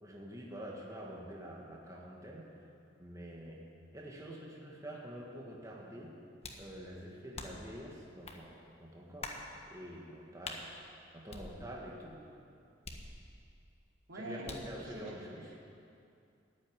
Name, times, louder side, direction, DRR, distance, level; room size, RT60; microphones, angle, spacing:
voice 1, 0.0-2.5 3.0-3.6 3.9-6.2 6.6-9.3 9.7-10.7 11.1-12.2 14.2-15.5, equal, 20° right, -3 dB, 1.7 m, -47 dB
sound 1, 6.4-6.7 7.3-7.7 8.2-8.4 9.2-9.5 10.4-10.6 11.3-11.9 12.8-13.5 14.4-14.8, left 3 dB, 35° left, 1.4 m, -45 dB
voice 2, 14.1-15.6, right 1 dB, 80° right, -3 dB, 3.2 m, -45 dB
14.5 x 8.7 x 10.0 m, 2.5 s
head